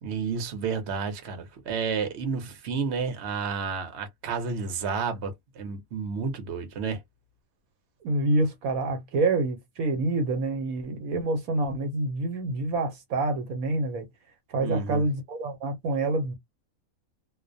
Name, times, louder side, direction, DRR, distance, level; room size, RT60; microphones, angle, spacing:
voice 1, 0.0-7.0 14.6-15.0, right 5 dB, 55° right, 1.0 m, -31 dB
voice 2, 8.0-14.1 14.5-16.4, right 2 dB, 75° right, 1.1 m, -27 dB
2.5 x 2.1 x 2.5 m
omnidirectional pair, 1.6 m